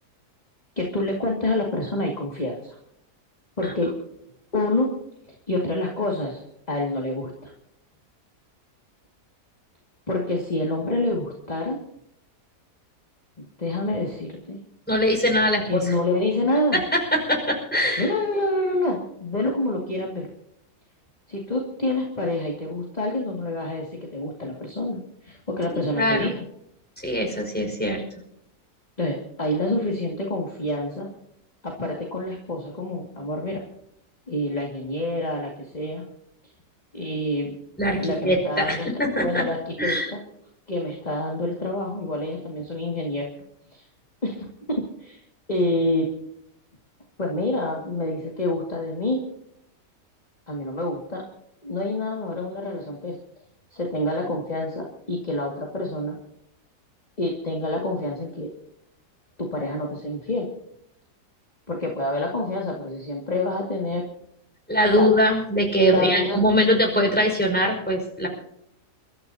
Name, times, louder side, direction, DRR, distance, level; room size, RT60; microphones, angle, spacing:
voice 1, 0.8-2.8 3.6-3.9 4.5-4.9 5.5-6.4 6.7-7.5 10.1-11.8 13.6-14.6 15.7-16.8 18.0-20.3 21.3-26.4 29.0-31.1 31.6-33.6 34.3-36.0 36.9-37.6 37.9-38.9 39.2-40.2 40.7-43.3 43.7-43.9 44.2-45.2 45.5-46.1 47.2-49.2 50.5-51.2 51.6-53.2 53.7-56.2 57.2-58.5 59.4-60.5 61.7-64.0 65.0-65.1 65.8-66.4, left 1 dB, 25° left, 0 dB, 2.4 m, -27 dB
voice 2, 14.9-15.9 16.7-18.1 25.7-26.3 27.0-28.0 37.8-39.4 39.8-40.1 64.7-68.3, equal, 5° left, 1 dB, 5.3 m, -22 dB
29.5 x 13.5 x 2.9 m, 0.78 s
omnidirectional pair, 1.8 m